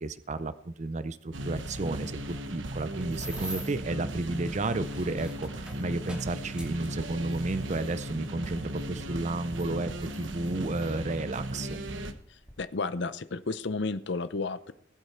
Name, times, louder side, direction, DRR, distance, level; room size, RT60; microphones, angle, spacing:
voice 1, 0.0-11.8, right 2 dB, 35° right, 13 dB, 0.5 m, -32 dB
sound 1, 1.3-12.1, right 1 dB, 70° right, 1.2 m, -37 dB
sound 2, 2.8-3.9 4.6-7.9 8.8-8.9 9.5-10.9 11.7-11.9 12.2-12.5, right 1 dB, 5° right, 2.6 m, -45 dB
sound 3, 4.2-9.4, left 2 dB, 35° left, 1.0 m, -54 dB
voice 2, 12.3-14.7, left 3 dB, 60° left, 13 dB, 0.7 m, -32 dB
19.5 x 8.1 x 4.4 m, 0.70 s
head